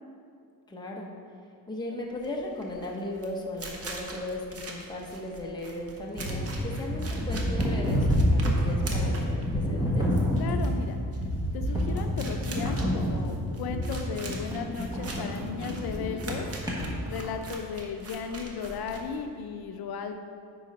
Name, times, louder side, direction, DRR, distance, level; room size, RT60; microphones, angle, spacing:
voice 1, 0.7-1.1 1.7-10.1, left 1 dB, 10° left, -1 dB, 0.8 m, -37 dB
sound 1, 2.1-19.5, right 2 dB, 40° right, 0.9 m, -43 dB
sound 2, 6.1-17.3, equal, 10° right, 1.2 m, -28 dB
voice 2, 10.4-11.0 11.5-16.4 17.1-20.2, left 6 dB, 70° left, 6 dB, 0.6 m, -35 dB
9.5 x 3.8 x 5.2 m, 2.3 s
cardioid pair, 170°, 39 cm